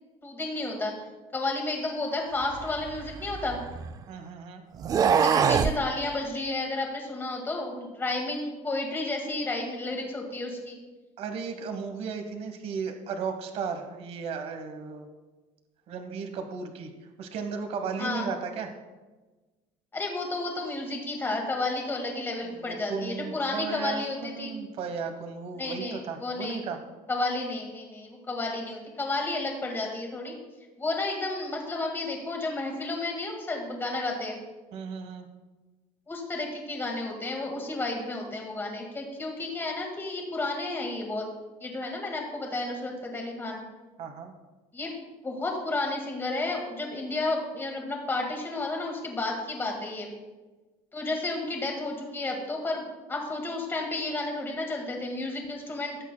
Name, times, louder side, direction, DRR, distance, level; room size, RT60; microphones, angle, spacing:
voice 1, 0.2-0.9 1.3-3.6 5.2-10.8 18.0-18.3 19.9-24.6 25.6-26.6 27.1-30.4 30.8-34.4 36.1-41.3 41.6-43.6 44.7-44.9 45.2-50.1 50.9-56.0, left 2 dB, 15° left, 1 dB, 1.9 m, -32 dB
sound 1, 2.5-4.0 4.8-5.8, right 7 dB, 25° right, 0.3 m, -24 dB
voice 2, 4.1-4.6 11.2-15.1 15.9-16.9 17.2-18.7 22.4-26.8 34.7-35.3 44.0-44.3, right 5 dB, 45° right, 6 dB, 1.1 m, -35 dB
17.5 x 8.2 x 2.2 m, 1.2 s
cardioid pair, 160°, 14 cm